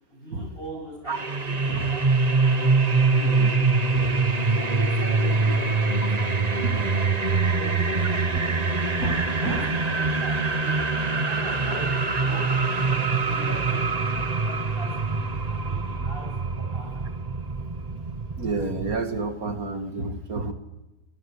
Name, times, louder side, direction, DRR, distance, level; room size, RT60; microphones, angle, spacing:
voice 1, 0.1-1.8 4.5-6.8 7.4-8.5 9.3-11.9 12.2-15.2 15.5-16.3 16.7-17.1, right 1 dB, 35° left, 0 dB, 8.1 m, -42 dB
sound 1, 1.1-19.0, right 3 dB, 25° right, 1.2 m, -24 dB
voice 2, 3.1-3.6 3.9-4.1 6.6-6.8 9.0-9.7 18.4-20.5, right 3 dB, 55° right, 8 dB, 2.6 m, -30 dB
27.5 x 21.0 x 9.8 m, 1.0 s
omnidirectional pair, 1.8 m